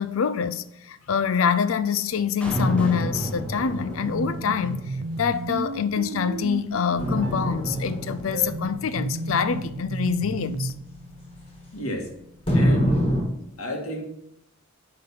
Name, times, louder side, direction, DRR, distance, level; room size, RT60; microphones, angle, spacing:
voice 1, 0.0-10.7, left 6 dB, 70° left, 0.5 m, -25 dB
Clapping, 2.4-4.4, left 1 dB, 5° left, 1.3 m, -44 dB
sound 1, 2.5-6.1 7.0-12.0 12.5-13.2, equal, 25° left, 2.2 m, -28 dB
sound 2, 4.0-10.8, right 3 dB, 55° right, 0.4 m, -33 dB
voice 2, 11.7-12.1 12.5-13.1 13.6-14.0, left 1 dB, 85° left, 2.0 m, -31 dB
10.5 x 3.9 x 5.8 m
head